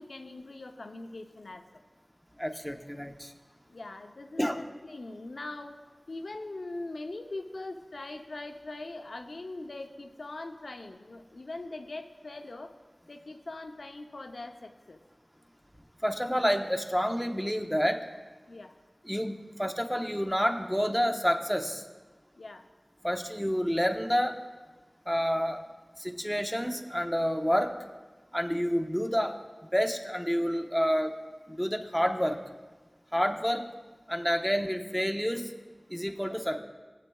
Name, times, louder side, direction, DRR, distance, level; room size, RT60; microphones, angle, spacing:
voice 1, 0.0-1.8 3.7-5.8 6.1-12.7 13.1-15.0 18.5-18.7 22.3-22.7 36.3-36.4, left 2 dB, 90° left, 5 dB, 0.6 m, -41 dB
voice 2, 2.4-3.3 4.4-4.6 16.0-18.0 19.1-21.8 23.0-24.3 25.1-25.6 26.0-27.7 28.3-29.3 29.7-31.1 31.5-32.4 33.1-33.7 34.1-35.5 35.9-36.6, equal, ahead, 4 dB, 0.9 m, -28 dB
19.0 x 8.5 x 2.3 m, 1.3 s
wide cardioid pair, 55°, 0 cm